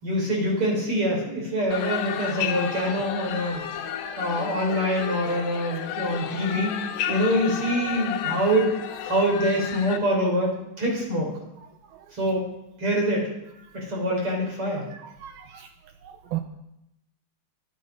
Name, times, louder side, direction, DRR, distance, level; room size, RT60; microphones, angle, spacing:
voice 1, 0.0-3.6 4.2-6.8 7.1-8.7 9.0-11.3 12.2-12.4 12.8-13.3 13.7-14.9, equal, 30° right, -1 dB, 5.2 m, -25 dB
sound 1, 1.7-10.0, left 10 dB, 75° left, 2.9 m, -32 dB
voice 2, 15.2-15.7 16.3-16.4, right 15 dB, 75° right, 7 dB, 2.3 m, -32 dB
24.0 x 9.2 x 5.3 m, 0.86 s
omnidirectional pair, 4.9 m